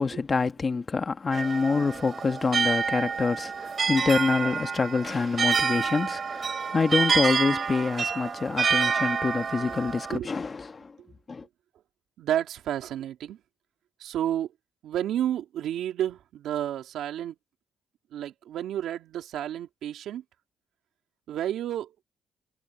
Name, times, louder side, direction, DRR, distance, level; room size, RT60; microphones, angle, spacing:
voice 1, 0.0-10.9 11.3-11.4, left 4 dB, 35° left, 1.5 m, -26 dB
sound 1, 1.3-10.2, right 5 dB, 45° right, 3.3 m, -28 dB
voice 2, 12.2-13.4 14.0-14.5 14.8-17.4 18.1-20.2 21.3-21.9, right 11 dB, 80° right, 3.4 m, -31 dB
cardioid pair, 90°, 0 cm